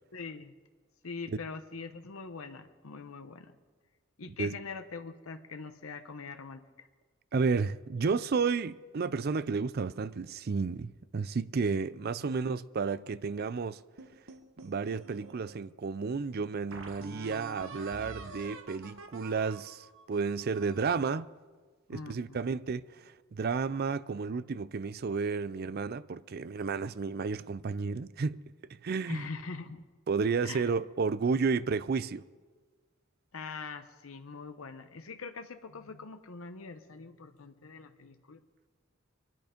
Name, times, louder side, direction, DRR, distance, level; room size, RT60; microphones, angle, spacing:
voice 1, 0.1-0.5 1.0-3.5 4.2-6.9 12.2-12.6 21.9-22.4 29.1-29.8 30.4-30.7 33.3-38.4, left 4 dB, 90° left, 0.9 m, -43 dB
voice 2, 7.3-13.8 14.6-21.3 21.9-28.4 28.8-29.3 30.1-32.2, right 5 dB, 50° right, 0.4 m, -32 dB
sound 1, 14.0-15.5 16.1-16.2 16.7-20.9, right 2 dB, 70° right, 1.4 m, -47 dB
24.0 x 10.5 x 5.1 m
head